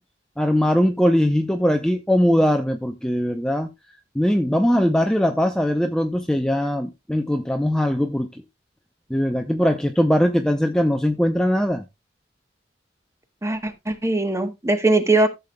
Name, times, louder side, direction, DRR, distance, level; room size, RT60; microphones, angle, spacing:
voice 1, 0.4-3.7 4.1-8.4 9.1-11.8, equal, 5° left, 0.6 m, -20 dB
voice 2, 13.4-15.3, right 2 dB, 15° right, 1.1 m, -20 dB
14.0 x 6.9 x 2.2 m
head